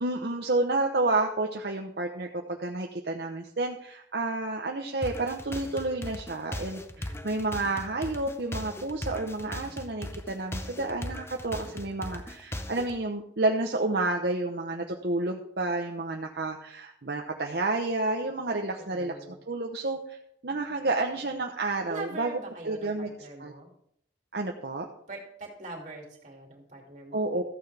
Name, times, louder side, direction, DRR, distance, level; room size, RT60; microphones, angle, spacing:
voice 1, 0.0-19.1 19.5-22.3 22.6-23.1 23.4-23.5 24.3-24.9 27.1-27.4, right 2 dB, 65° right, 2 dB, 0.9 m, -30 dB
sound 1, 5.0-13.0, left 1 dB, 15° left, 0.6 m, -38 dB
voice 2, 6.9-7.4 18.8-19.4 21.9-23.7 25.1-27.2, right 2 dB, 45° right, 0 dB, 2.7 m, -43 dB
14.0 x 9.4 x 3.4 m, 0.69 s
head